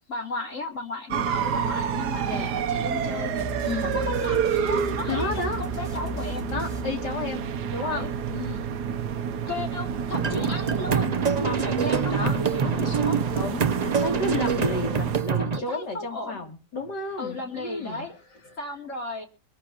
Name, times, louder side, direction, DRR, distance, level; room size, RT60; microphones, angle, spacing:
voice 1, 0.1-3.3 3.8-6.4 7.8-8.1 9.5-13.2 15.4-16.4 17.2-18.1 18.6-19.3, left 2 dB, 45° left, 2 dB, 3.4 m, -34 dB
sound 1, 1.1-15.2, right 7 dB, 65° right, 1.4 m, -29 dB
voice 2, 2.2-2.6 3.6-4.0 5.1-5.6 6.5-7.4 7.7-8.8 12.1-12.4 13.3-18.2 18.4-18.6, left 3 dB, 70° left, 3 dB, 3.5 m, -32 dB
sound 2, 3.4-7.7, left 1 dB, 20° left, 4.3 m, -37 dB
sound 3, 10.1-15.6, right 6 dB, 40° right, 0.5 m, -26 dB
24.0 x 11.5 x 2.9 m, 0.36 s
omnidirectional pair, 1.9 m